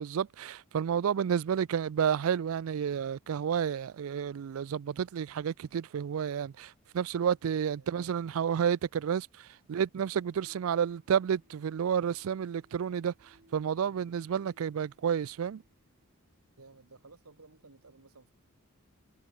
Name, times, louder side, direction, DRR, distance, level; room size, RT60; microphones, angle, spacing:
voice 1, 0.0-9.3 9.7-13.1 13.5-15.6, right 8 dB, 70° right, 0.4 m, -30 dB
voice 2, 7.8-8.3 16.6-18.3, right 3 dB, 90° right, 1.7 m, -57 dB
sound 1, 10.3-16.1, right 1 dB, 45° right, 6.4 m, -66 dB
head